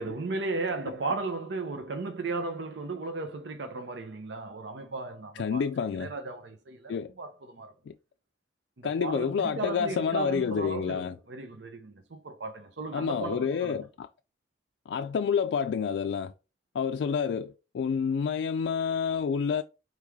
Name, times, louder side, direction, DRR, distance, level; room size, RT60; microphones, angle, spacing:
voice 1, 0.0-7.7 8.8-13.8, right 3 dB, 85° right, 0.7 m, -35 dB
voice 2, 5.4-6.1 6.9-7.1 7.9-8.0 8.8-11.1 12.9-14.1 14.9-16.3 16.7-19.6, left 6 dB, 80° left, 0.3 m, -29 dB
4.7 x 3.5 x 3.1 m
head